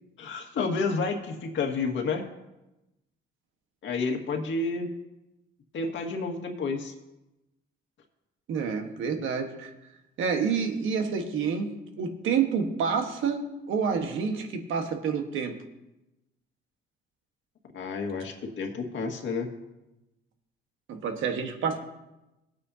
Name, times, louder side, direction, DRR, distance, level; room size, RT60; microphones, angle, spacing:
voice 1, 0.2-2.3 3.8-4.9 5.7-6.9 17.7-19.5, left 4 dB, 70° left, 3 dB, 1.9 m, -30 dB
voice 2, 8.5-9.7 10.2-11.7 12.0-15.6 20.9-21.8, right 6 dB, 80° right, 5 dB, 1.5 m, -28 dB
18.5 x 8.9 x 2.8 m, 0.97 s
cardioid pair, 90°, 20 cm